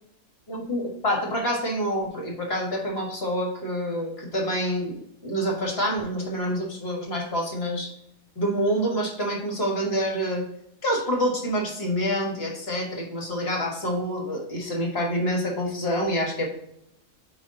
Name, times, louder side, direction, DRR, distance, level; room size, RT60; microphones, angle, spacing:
voice 1, 0.5-7.9 8.4-10.4 10.8-16.5, equal, 45° left, 0 dB, 1.7 m, -27 dB
9.3 x 3.1 x 3.8 m, 0.76 s
omnidirectional pair, 1.4 m